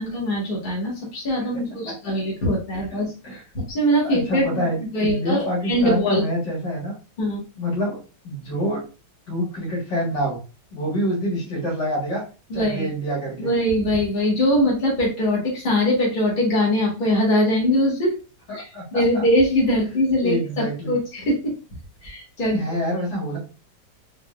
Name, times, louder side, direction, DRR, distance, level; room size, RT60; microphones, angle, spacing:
voice 1, 0.0-3.1 3.5-4.4 4.8-6.2 7.2-7.4 12.5-12.9 13.4-18.1 18.5-21.4 22.0-22.6, equal, 30° left, -5 dB, 1.6 m, -22 dB
voice 2, 2.9-3.4 4.0-6.9 7.6-8.8 9.3-10.4 10.7-12.2 12.5-13.5 18.5-19.2 20.2-20.9 22.5-23.4, equal, 70° left, -3 dB, 2.2 m, -27 dB
3.8 x 3.5 x 2.4 m, 0.34 s
omnidirectional pair, 1.9 m